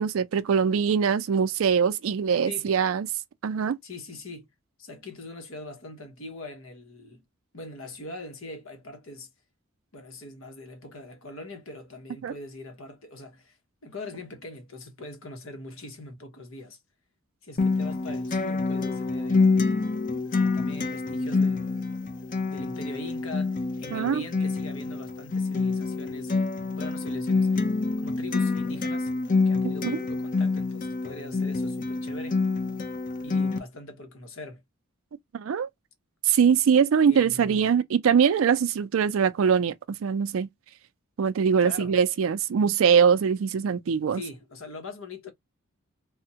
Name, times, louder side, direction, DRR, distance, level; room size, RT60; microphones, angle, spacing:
voice 1, 0.0-3.1 3.4-3.8 12.2-12.3 23.9-24.2 29.6-30.0 35.3-35.7 36.2-40.5 41.2-44.2, right 7 dB, 75° right, 0.4 m, -22 dB
voice 2, 3.8-4.5 4.8-7.2 7.5-9.3 9.9-13.6 13.8-16.8 17.4-19.7 20.3-21.9 22.5-29.1 29.4-32.4 33.2-34.6 37.1-37.7 41.6-42.0 44.1-45.3, left 2 dB, 75° left, 1.0 m, -42 dB
Acoustic guitar, 17.6-33.6, left 3 dB, 40° left, 0.5 m, -27 dB
3.3 x 2.1 x 2.7 m
head